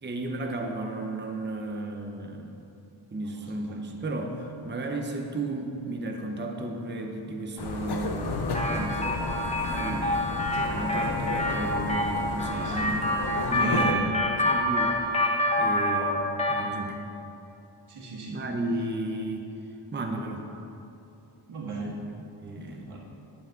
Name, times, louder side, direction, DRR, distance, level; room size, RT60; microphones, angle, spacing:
voice 1, 0.0-2.6 3.1-9.2 9.7-10.1 10.7-14.1 14.4-17.0 18.3-19.5 19.9-20.5 22.4-22.9, right 2 dB, 20° right, 3 dB, 0.7 m, -34 dB
voice 2, 3.2-3.8 9.6-9.9 12.5-12.9 13.3-14.1 17.9-18.4 21.5-22.0 22.5-23.0, right 3 dB, 80° right, -3 dB, 1.8 m, -35 dB
sound 1, 7.6-13.9, left 4 dB, 50° left, 0.7 m, -33 dB
sound 2, 7.7-15.0, right 1 dB, 60° right, 1.1 m, -43 dB
sound 3, 8.5-16.7, left 1 dB, 15° left, 0.9 m, -27 dB
10.0 x 7.8 x 3.8 m, 2.8 s
wide cardioid pair, 90°, 50 cm